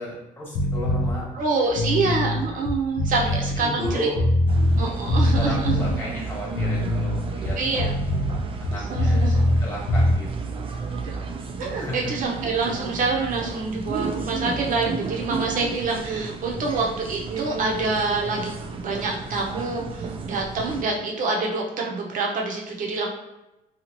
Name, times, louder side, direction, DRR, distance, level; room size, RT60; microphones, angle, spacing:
voice 1, 0.0-1.2 2.5-2.6 3.2-4.2 5.4-7.6 8.6-9.2 9.6-10.5 11.8-12.1, equal, 15° left, -5 dB, 1.2 m, -33 dB
sound 1, 0.5-1.1 1.7-4.8 5.1-5.9 6.5-9.6 9.9-10.1, left 1 dB, 85° left, 0.5 m, -22 dB
voice 2, 1.3-4.1 4.8-5.8 7.6-7.9 8.9-9.4 11.6-18.5 18.8-23.1, right 3 dB, 50° right, -1 dB, 0.8 m, -26 dB
sound 2, 4.5-20.8, right 4 dB, 30° right, 0.3 m, -33 dB
2.8 x 2.4 x 2.9 m, 0.94 s
cardioid pair, 110°, 17 cm